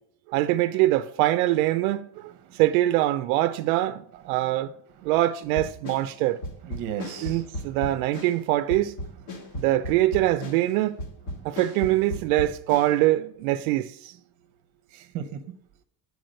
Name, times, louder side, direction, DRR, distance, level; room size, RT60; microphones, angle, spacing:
voice 1, 0.3-2.3 2.6-4.7 5.0-6.4 7.2-9.0 9.6-11.0 11.4-14.1, right 15 dB, 85° right, 0.5 m, -23 dB
sound 1, 5.5-13.0, left 1 dB, 60° left, 1.6 m, -36 dB
voice 2, 6.6-7.5 9.3-9.6 11.4-11.6 14.9-15.5, right 9 dB, 45° right, 0.9 m, -36 dB
7.8 x 4.8 x 5.2 m
cardioid pair, 155°, 42 cm